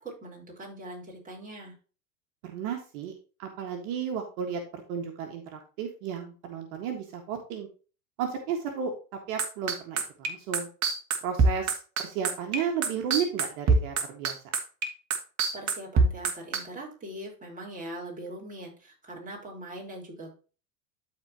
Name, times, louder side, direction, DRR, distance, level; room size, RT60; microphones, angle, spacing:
voice 1, 0.0-1.7 15.5-20.3, right 1 dB, 20° right, -2 dB, 4.3 m, -41 dB
voice 2, 2.4-3.1 3.4-7.7 8.2-8.9 9.3-10.7 11.2-14.4, right 7 dB, 70° right, 3 dB, 1.8 m, -33 dB
sound 1, 9.4-16.6, right 4 dB, 40° right, 2.0 m, -23 dB
13.0 x 4.5 x 2.9 m, 0.36 s
hypercardioid pair, 100°, 42 cm